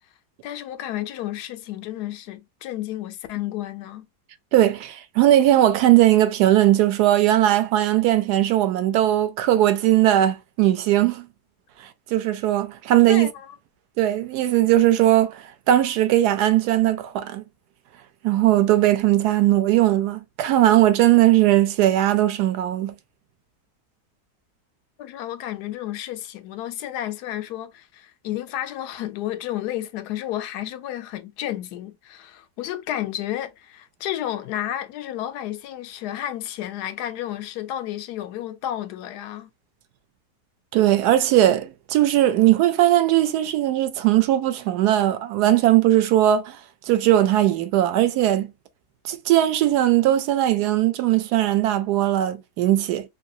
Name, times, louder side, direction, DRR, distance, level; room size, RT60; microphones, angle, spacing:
voice 1, 0.4-4.1 13.1-13.6 25.0-39.5, left 12 dB, 80° left, 1.1 m, -31 dB
voice 2, 4.5-11.3 12.1-13.3 14.0-17.4 18.2-22.9 40.7-46.6 46.9-48.5 49.0-53.0, right 13 dB, 90° right, 1.2 m, -19 dB
3.2 x 2.6 x 2.6 m
omnidirectional pair, 1.7 m